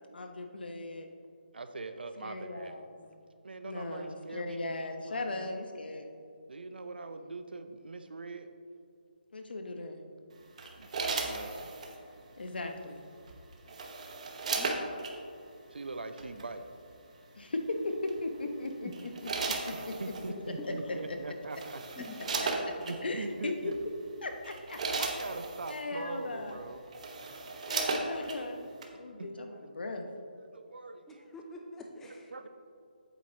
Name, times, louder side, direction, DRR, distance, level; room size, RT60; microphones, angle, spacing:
voice 1, 0.1-1.1 2.2-2.9 3.6-6.1 9.3-10.0 12.4-13.0 17.3-19.3 19.7-19.9 23.0-23.7 24.2-24.8 25.7-26.6 27.7-28.7 29.0-30.1, left 2 dB, 75° left, 4 dB, 1.0 m, -37 dB
voice 2, 1.5-2.8 3.4-4.7 6.5-8.5 10.8-10.9 11.2-11.8 15.7-16.6 19.7-21.8 22.8-23.8 25.0-26.8 29.2-29.3 30.4-31.3 32.3-32.5, right 3 dB, 80° right, 9 dB, 0.6 m, -42 dB
sound 1, 10.6-12.0 13.3-15.1 16.2-16.4 18.1-18.4 18.9-20.3 21.1-21.2 21.5-23.0 23.7-23.9 24.3-25.8 26.5-26.6 26.9-28.4 28.8-28.9, right 4 dB, 45° right, 0.9 m, -35 dB
voice 3, 14.5-15.0 18.6-18.9 20.6-20.7 21.8-22.2 31.1-32.3, left 3 dB, 5° left, 1 dB, 0.5 m, -47 dB
8.2 x 7.5 x 2.8 m, 2.4 s
hypercardioid pair, 160°, 5 cm